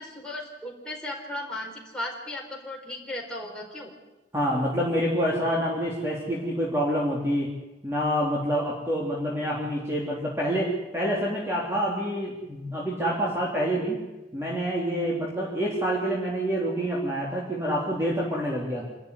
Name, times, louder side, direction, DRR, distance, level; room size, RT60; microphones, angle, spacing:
voice 1, 0.0-3.9, left 1 dB, 5° left, -2 dB, 4.6 m, -36 dB
voice 2, 4.3-7.5 7.8-14.0 14.3-18.9, equal, 15° right, -5 dB, 3.6 m, -27 dB
27.0 x 13.5 x 9.8 m, 1.1 s
head